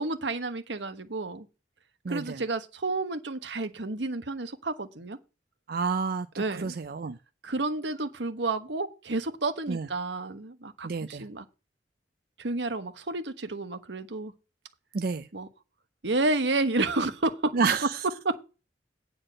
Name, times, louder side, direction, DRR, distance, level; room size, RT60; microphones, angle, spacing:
voice 1, 0.0-1.5 2.1-5.2 6.4-6.8 7.4-11.4 12.4-14.3 15.3-15.5 16.0-17.5 18.2-18.4, right 2 dB, 85° right, 1.2 m, -30 dB
voice 2, 2.0-2.4 5.7-7.2 9.7-9.9 10.8-11.3 14.9-15.3 17.5-18.0, right 5 dB, 55° right, 0.5 m, -30 dB
9.5 x 4.3 x 7.6 m
head